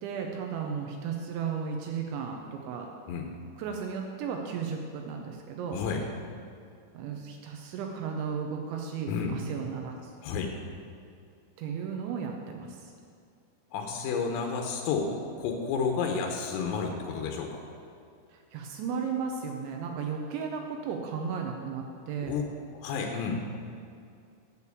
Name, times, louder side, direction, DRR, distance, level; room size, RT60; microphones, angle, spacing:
voice 1, 0.0-2.9 3.6-5.8 6.9-10.1 11.6-12.9 18.3-22.4, right 6 dB, 80° right, 2 dB, 2.9 m, -35 dB
voice 2, 10.2-10.5 13.7-15.1 15.4-17.6 22.2-22.4 22.7-23.4, left 5 dB, 90° left, 2 dB, 3.5 m, -31 dB
8.4 x 7.1 x 8.2 m, 2.4 s
omnidirectional pair, 5.7 m